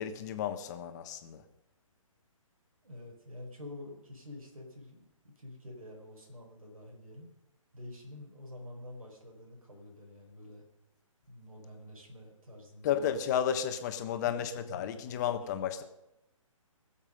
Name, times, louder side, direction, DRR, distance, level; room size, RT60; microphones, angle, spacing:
voice 1, 0.0-1.4 12.8-15.8, left 9 dB, 30° left, 8 dB, 1.3 m, -32 dB
voice 2, 2.8-7.3 7.7-10.6 11.3-13.0 14.2-15.5, left 1 dB, 80° right, -1 dB, 4.9 m, -48 dB
21.5 x 7.4 x 5.4 m, 0.89 s
figure-of-eight pair, 145°, 18 cm